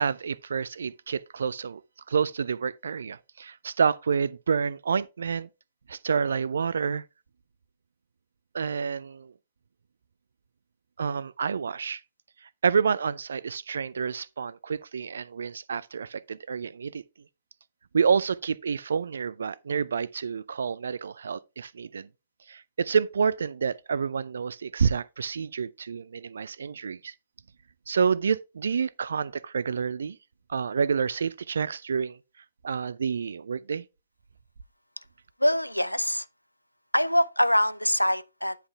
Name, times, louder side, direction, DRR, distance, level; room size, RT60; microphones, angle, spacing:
voice 1, 0.0-1.8 2.1-5.5 5.9-7.0 8.5-9.3 11.0-12.0 12.6-17.0 17.9-22.1 22.5-27.1 27.9-30.2 30.5-32.2 32.6-33.8, right 6 dB, 65° right, 0.4 m, -28 dB
voice 2, 35.4-36.3 36.9-38.6, equal, 90° left, 0.4 m, -24 dB
9.5 x 5.8 x 3.5 m
figure-of-eight pair, 115°, 0 cm